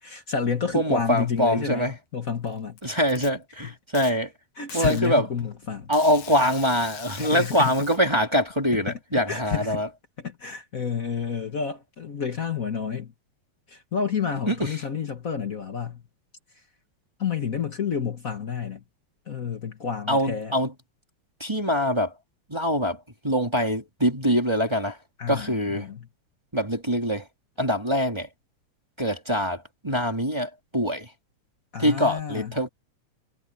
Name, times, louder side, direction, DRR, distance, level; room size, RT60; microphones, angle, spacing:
voice 1, 0.0-1.8 2.1-2.8 3.6-3.7 4.0-4.1 4.6-5.9 7.2-7.7 8.7-9.0 9.3-9.8 10.2-13.1 13.7-16.0 17.2-18.8 19.3-20.5 25.2-26.1 31.7-32.5, left 6 dB, 50° left, 1.0 m, -30 dB
voice 2, 0.7-1.9 2.8-4.3 4.7-5.3 5.9-9.9 14.5-14.8 20.1-20.7 21.4-22.1 22.5-25.0 25.3-25.9 26.5-27.2 27.6-28.3 29.0-31.1 31.8-32.7, equal, 10° right, 2.5 m, -24 dB
Packing tape duct tape, 2.3-3.3 3.9-4.1 4.7-5.0 5.9-8.0, left 8 dB, 75° left, 3.2 m, -42 dB
omnidirectional pair, 3.3 m